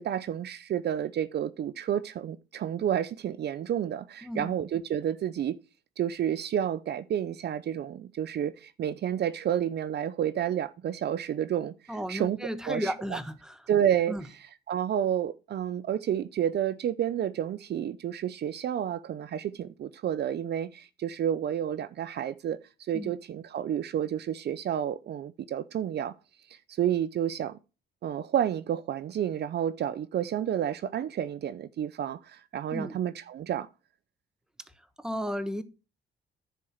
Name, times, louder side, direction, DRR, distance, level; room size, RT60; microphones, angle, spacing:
voice 1, 0.0-5.6 6.0-12.4 12.7-13.2 13.7-26.1 26.5-27.6 28.0-33.7, right 10 dB, 60° right, 0.6 m, -30 dB
voice 2, 4.2-4.5 11.9-13.6 14.1-14.2 22.9-23.1 32.7-33.0 35.0-35.6, equal, 5° right, 1.1 m, -34 dB
10.5 x 4.4 x 6.3 m
cardioid pair, 90°, 20 cm